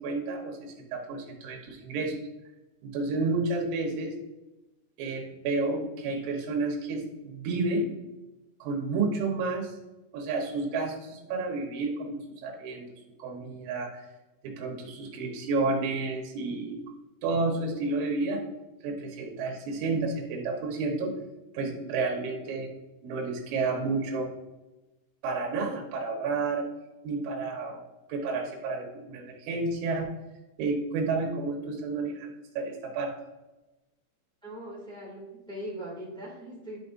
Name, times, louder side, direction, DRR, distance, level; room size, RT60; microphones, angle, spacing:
voice 1, 0.0-2.2 2.8-4.1 5.0-7.9 8.6-9.7 10.1-12.9 13.2-13.9 14.4-16.8 17.2-18.4 18.8-21.1 21.5-22.7 23.0-24.3 25.2-26.6 27.0-27.8 28.1-30.1 30.6-32.3 32.6-33.1, right 3 dB, 90° right, 0 dB, 3.6 m, -30 dB
voice 2, 34.4-36.8, equal, 5° left, -6 dB, 0.3 m, -40 dB
11.5 x 5.8 x 2.6 m, 1.0 s
omnidirectional pair, 5.1 m